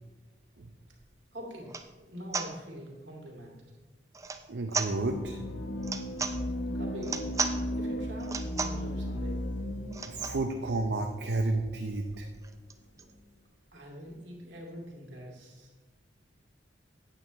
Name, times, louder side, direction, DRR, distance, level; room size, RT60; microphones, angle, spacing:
sound 1, 1.0-1.1 1.6-1.9 2.3-2.5 4.1-4.4 4.7-4.9 5.8-6.4 7.0-7.6 8.2-8.8 9.9-10.4 10.9-11.0 11.2-11.3 11.6-13.1, right 4 dB, 15° right, 0.4 m, -35 dB
voice 1, 1.3-3.6 6.7-7.3 7.8-9.4 12.9-13.1 13.7-15.7, equal, 80° right, -2 dB, 2.5 m, -44 dB
voice 2, 4.5-5.4 10.0-12.3, right 2 dB, 60° right, 3 dB, 0.6 m, -31 dB
sound 2, 4.8-12.0, left 1 dB, 80° left, 0.7 m, -36 dB
8.9 x 8.1 x 4.1 m, 1.2 s
head